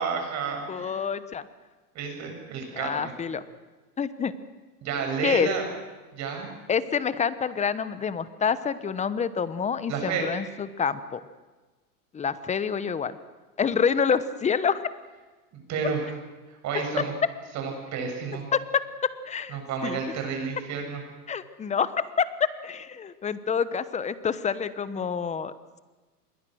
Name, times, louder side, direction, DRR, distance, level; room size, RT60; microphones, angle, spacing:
voice 1, 0.0-1.0 1.9-3.1 4.8-5.7 6.1-6.5 9.9-10.3 15.5-16.1 16.5-17.1 17.5-18.4 19.5-21.0, right 5 dB, 35° right, 3 dB, 7.3 m, -31 dB
voice 2, 0.7-1.5 2.7-3.4 4.0-4.3 5.2-5.5 6.7-11.2 12.1-13.2 13.6-14.9 17.0-17.1 18.5-18.8 19.3-20.0 21.3-25.5, left 6 dB, 15° left, 15 dB, 1.0 m, -27 dB
26.5 x 22.0 x 6.4 m, 1.2 s
hypercardioid pair, 120°, 45 cm